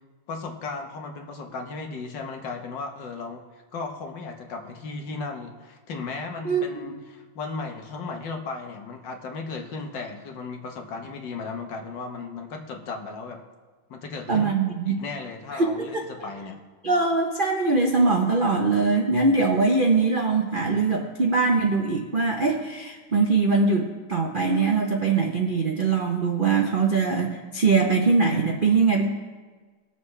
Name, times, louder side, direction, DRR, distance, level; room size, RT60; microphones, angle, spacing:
voice 1, 0.3-13.4 13.9-14.5 14.8-16.6, left 4 dB, 65° left, 3 dB, 1.7 m, -35 dB
voice 2, 6.4-6.9 14.3-15.0 15.5-16.0 16.8-29.1, right 4 dB, 65° right, 1 dB, 0.5 m, -22 dB
19.5 x 7.0 x 3.3 m, 1.4 s
omnidirectional pair, 2.2 m